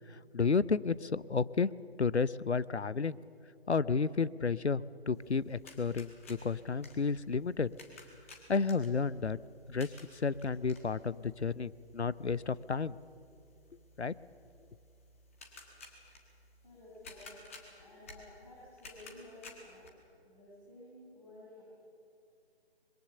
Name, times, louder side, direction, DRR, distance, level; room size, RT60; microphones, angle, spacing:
voice 1, 0.3-1.7 2.0-3.2 3.7-7.7 8.5-9.4 9.7-9.9 10.1-12.9 14.0-14.1, left 5 dB, 80° left, 18 dB, 0.7 m, -31 dB
sound 1, 5.1-19.9, left 2 dB, 15° left, 1.4 m, -56 dB
voice 2, 16.6-17.4 17.8-19.9 20.2-21.6, left 1 dB, 35° left, -8 dB, 6.6 m, -53 dB
24.5 x 21.5 x 7.1 m, 2.5 s
figure-of-eight pair, 155°, 33 cm